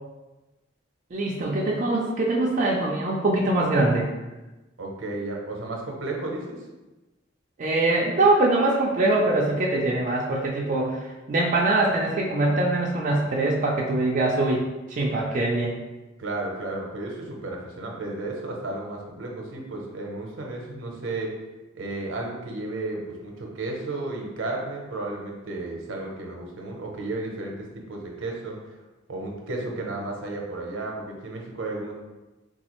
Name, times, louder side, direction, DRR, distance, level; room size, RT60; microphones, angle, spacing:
voice 1, 1.1-4.1 7.6-15.8, right 2 dB, 40° right, -3 dB, 0.4 m, -23 dB
voice 2, 4.8-6.6 16.2-21.3 21.7-28.8 29.1-31.9, right 2 dB, 75° right, 0 dB, 0.7 m, -33 dB
4.0 x 2.3 x 3.0 m, 1.1 s
head